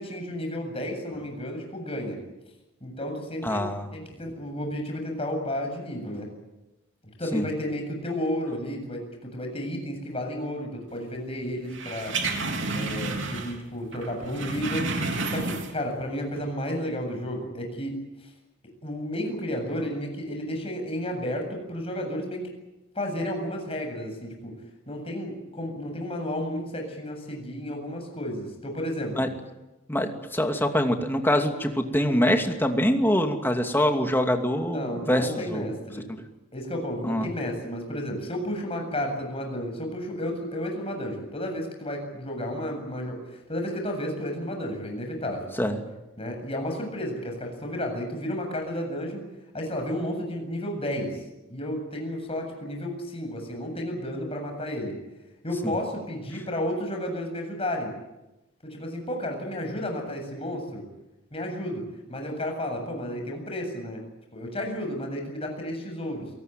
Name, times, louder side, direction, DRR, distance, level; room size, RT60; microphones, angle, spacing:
voice 1, 0.0-2.2 2.8-3.6 3.9-6.3 7.2-12.2 12.7-14.9 15.3-17.9 18.2-18.3 18.8-22.5 22.9-24.5 24.9-29.3 34.6-36.1 36.5-45.5 46.2-49.2 49.5-51.2 51.5-54.9 55.4-57.9 58.6-60.8 61.3-64.1 64.3-66.3, equal, 30° left, 3 dB, 7.7 m, -32 dB
voice 2, 3.4-3.9 7.3-7.4 29.2-29.3 29.9-35.7 36.1-36.2 37.0-37.3 45.6-45.8 55.6-55.7, equal, 10° left, 4 dB, 2.6 m, -24 dB
sound 1, 11.7-13.7 13.9-15.9 16.3-16.4, right 3 dB, 65° right, 3.7 m, -30 dB
28.0 x 18.5 x 9.4 m, 1.0 s
head